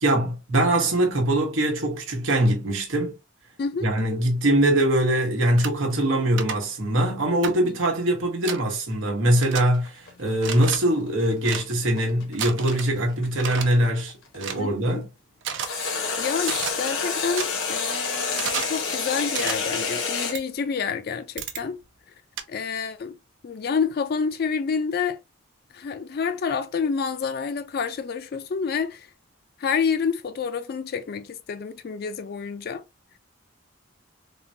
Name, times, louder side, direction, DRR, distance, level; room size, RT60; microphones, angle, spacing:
voice 1, 0.0-3.2 3.8-15.1, right 1 dB, 85° right, 1.0 m, -22 dB
sound 1, 5.6-5.7 6.4-6.5 7.4-7.5 8.4-8.6 9.4-9.6 10.4-10.8 11.4-11.6 12.4-12.9 13.4-13.7 14.4-14.6 15.4-15.7 16.4-16.7 17.4-17.5 18.3-18.7 19.3-19.5 20.3-20.4 21.4-21.6 22.4-22.5, right 7 dB, 70° right, 0.5 m, -31 dB
sound 2, 9.3-14.5 15.6-20.3, left 5 dB, 90° left, 1.1 m, -29 dB
voice 2, 14.6-15.0 16.2-21.8 22.5-23.1 23.4-25.2 25.7-29.1 29.6-32.8, left 6 dB, 50° left, 0.3 m, -28 dB
3.6 x 2.2 x 2.7 m
head